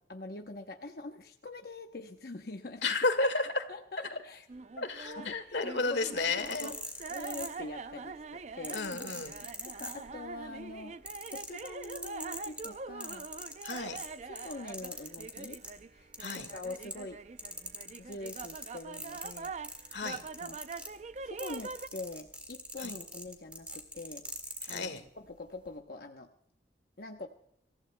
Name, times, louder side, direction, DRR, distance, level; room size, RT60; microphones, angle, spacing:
voice 1, 0.1-3.0 3.7-4.4 5.2-5.6 5.9-6.8 7.1-8.8 9.6-11.0 11.3-13.3 14.3-15.6 15.9-17.2 18.0-19.5 20.4-20.6 21.2-24.3 24.7-26.3 27.0-27.3, left 2 dB, 60° left, 3 dB, 0.9 m, -44 dB
voice 2, 2.8-3.7 4.8-6.7 8.7-9.4 13.6-14.0 16.2-16.5 19.9-20.2 22.8-23.0 24.6-25.0, left 3 dB, 85° left, 10 dB, 1.8 m, -32 dB
Carnatic varnam by Dharini in Mohanam raaga, 4.5-21.9, right 4 dB, 40° right, 0.5 m, -44 dB
sound 1, 6.2-7.9 8.6-10.4 10.7-15.8 16.1-17.1 17.4-24.8 25.6-25.7, right 1 dB, 5° right, 1.8 m, -43 dB
26.0 x 15.5 x 2.2 m, 0.69 s
head